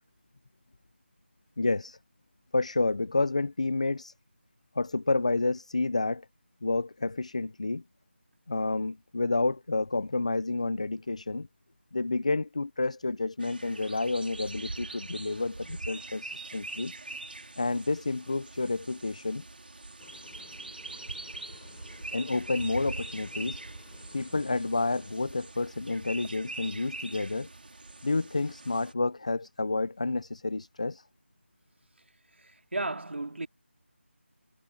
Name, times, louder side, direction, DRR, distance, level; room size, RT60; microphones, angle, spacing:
voice 1, 1.6-2.0 2.5-4.1 4.8-6.3 6.6-7.8 8.5-11.5 11.9-16.9 17.6-19.4 22.1-23.6 24.1-27.5 28.0-31.0, left 3 dB, 30° left, 0.5 m, -29 dB
sound 1, 13.4-28.9, right 2 dB, 50° right, 4.1 m, -43 dB
sound 2, 14.6-14.9 15.3-15.6 16.4-17.9, right 6 dB, 20° right, 6.7 m, -62 dB
sound 3, 20.0-25.6, left 10 dB, 10° left, 7.3 m, -57 dB
voice 2, 32.4-33.5, right 2 dB, 65° right, 2.5 m, -35 dB
figure-of-eight pair, 175°, 7 cm